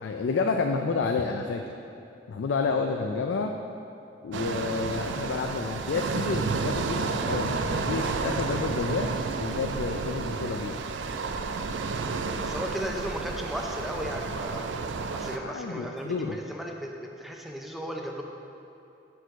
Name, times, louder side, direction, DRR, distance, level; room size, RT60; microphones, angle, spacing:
voice 1, 0.0-1.7 2.3-3.5 4.2-9.1 9.4-10.8 15.3-16.4, left 4 dB, 85° left, 4 dB, 0.4 m, -30 dB
sound 1, 4.3-15.4, right 4 dB, 80° right, 0.4 m, -31 dB
voice 2, 12.4-14.7 15.1-18.2, equal, ahead, 0 dB, 0.5 m, -35 dB
6.2 x 4.5 x 5.8 m, 2.8 s
head